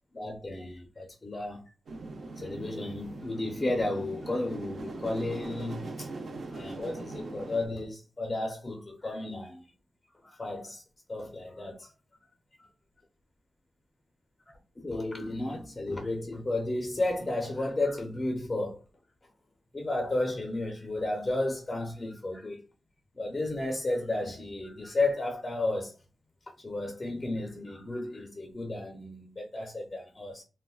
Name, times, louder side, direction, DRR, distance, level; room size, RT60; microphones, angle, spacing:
voice 1, 0.1-1.7 2.4-6.1 6.5-9.7 10.2-10.8 11.1-11.9 12.6-12.7 14.8-18.8 19.7-22.6 23.2-25.9 26.6-30.4, left 2 dB, 25° left, 0.4 m, -33 dB
sound 1, 1.9-7.7, right 3 dB, 70° right, 0.6 m, -41 dB
3.6 x 2.1 x 2.3 m
wide cardioid pair, 145°, 0 cm